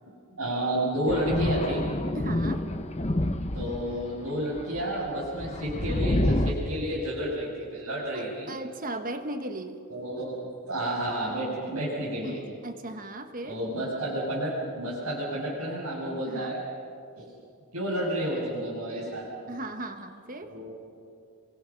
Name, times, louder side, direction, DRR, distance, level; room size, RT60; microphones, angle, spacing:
voice 1, 0.0-1.8 3.5-8.5 9.9-10.4 10.7-12.4 13.4-16.6 17.2-17.3 17.7-19.2 20.4-20.7, right 1 dB, 80° right, -7 dB, 6.8 m, -31 dB
Thunder, 1.1-4.0 4.6-6.5, left 1 dB, 30° left, 1.0 m, -28 dB
voice 2, 2.1-2.7 8.1-9.8 12.2-13.6 16.2-16.6 19.5-20.5, right 1 dB, 40° right, 7 dB, 1.4 m, -37 dB
29.5 x 24.0 x 6.0 m, 2.4 s
head